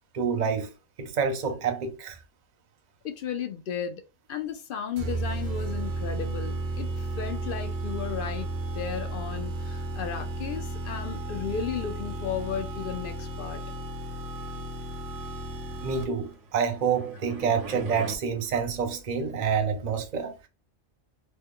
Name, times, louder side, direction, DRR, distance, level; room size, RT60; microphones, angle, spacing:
voice 1, 0.1-0.7 1.0-2.2 15.8-20.5, right 6 dB, 45° right, 0.6 m, -28 dB
voice 2, 3.0-4.0 4.3-8.5 8.7-13.6, left 7 dB, 60° left, 0.6 m, -34 dB
sound 1, 5.0-16.3, right 2 dB, 90° right, 1.0 m, -33 dB
sound 2, 16.2-18.2, right 2 dB, 65° right, 1.2 m, -40 dB
3.1 x 2.1 x 3.6 m
omnidirectional pair, 1.4 m